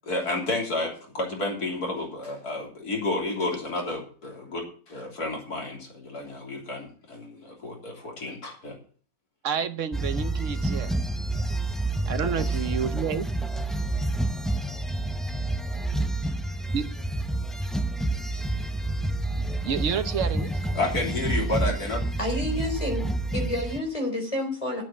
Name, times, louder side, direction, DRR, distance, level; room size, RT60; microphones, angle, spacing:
voice 1, 0.0-8.8 20.7-22.0, left 2 dB, 85° left, 0 dB, 3.8 m, -31 dB
voice 2, 9.4-10.9 12.0-13.3 16.7-16.9 19.6-20.6, right 7 dB, 60° right, 10 dB, 1.2 m, -29 dB
sound 1, 9.9-23.8, right 2 dB, ahead, 0.4 m, -28 dB
voice 3, 22.2-24.8, left 1 dB, 20° left, 2 dB, 4.3 m, -29 dB
10.0 x 8.8 x 7.3 m, 0.43 s
omnidirectional pair, 1.6 m